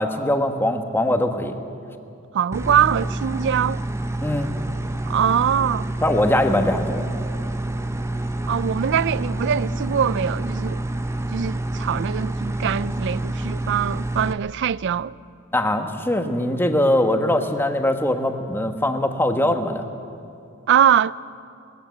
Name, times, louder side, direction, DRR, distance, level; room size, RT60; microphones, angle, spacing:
voice 1, 0.0-1.6 4.2-4.5 6.0-7.0 15.5-19.8, left 1 dB, 10° left, 1.2 m, -21 dB
voice 2, 2.3-3.9 5.1-5.9 8.5-10.8 11.3-15.2 20.7-21.2, right 8 dB, 55° right, 0.4 m, -22 dB
sound 1, 2.5-14.3, right 1 dB, 15° right, 0.7 m, -27 dB
20.0 x 15.0 x 9.4 m
head